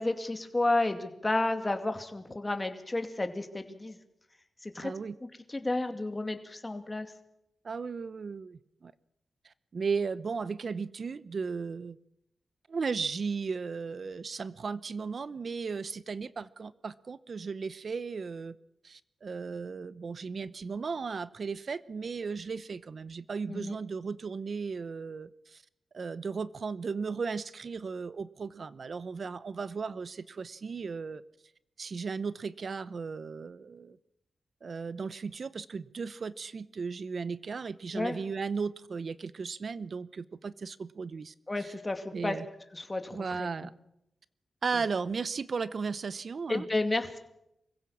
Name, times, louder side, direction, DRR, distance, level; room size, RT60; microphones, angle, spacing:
voice 1, 0.0-4.0 4.6-4.9 5.5-7.1 23.5-23.7 37.9-38.2 41.5-42.4 42.7-43.7 44.7-44.8 46.5-47.2, left 2 dB, 25° left, 6 dB, 2.4 m, -31 dB
voice 2, 4.8-5.1 7.6-8.9 9.4-12.0 12.7-18.6 18.8-25.6 25.9-31.2 31.8-34.0 34.6-41.3 41.6-41.7 42.1-42.5 43.1-43.7 44.6-46.7, right 5 dB, 60° right, 17 dB, 0.8 m, -36 dB
24.0 x 15.5 x 7.2 m, 0.82 s
cardioid pair, 65°, 0 cm